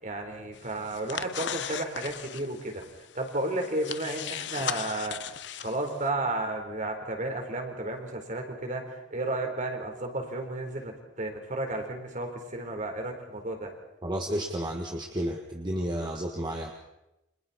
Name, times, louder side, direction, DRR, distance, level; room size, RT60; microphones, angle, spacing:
voice 1, 0.0-2.8 3.1-13.7, right 2 dB, 45° right, 3 dB, 4.0 m, -33 dB
sound 1, 0.5-6.1, left 9 dB, 70° left, 0.9 m, -38 dB
voice 2, 14.0-16.7, right 1 dB, 25° right, 1 dB, 1.6 m, -32 dB
30.0 x 25.5 x 4.3 m, 0.91 s
head